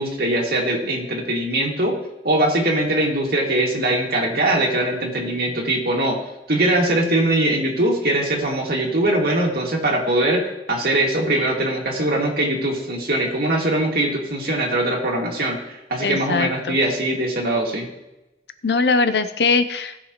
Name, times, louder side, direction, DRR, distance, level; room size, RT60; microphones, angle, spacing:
voice 1, 0.0-2.0 2.2-6.2 6.5-17.9, right 1 dB, 60° right, -1 dB, 2.2 m, -21 dB
voice 2, 16.0-16.8 18.6-20.0, left 4 dB, 65° left, 11 dB, 0.7 m, -21 dB
18.5 x 6.5 x 3.1 m, 0.95 s
head